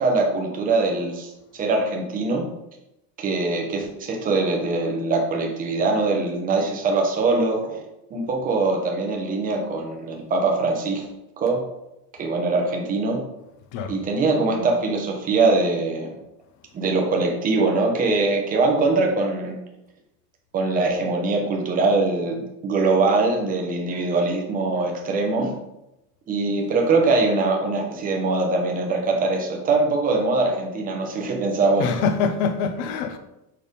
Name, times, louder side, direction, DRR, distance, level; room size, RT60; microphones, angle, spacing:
voice 1, 0.0-2.4 3.2-7.8 8.1-11.1 11.4-11.6 12.2-13.2 13.9-16.2 16.7-19.6 20.5-25.5 26.3-31.9, right 3 dB, 15° right, 0.8 m, -22 dB
voice 2, 31.8-33.2, left 5 dB, 30° left, 0.4 m, -25 dB
6.6 x 3.3 x 5.2 m
supercardioid pair, 170°, 50 cm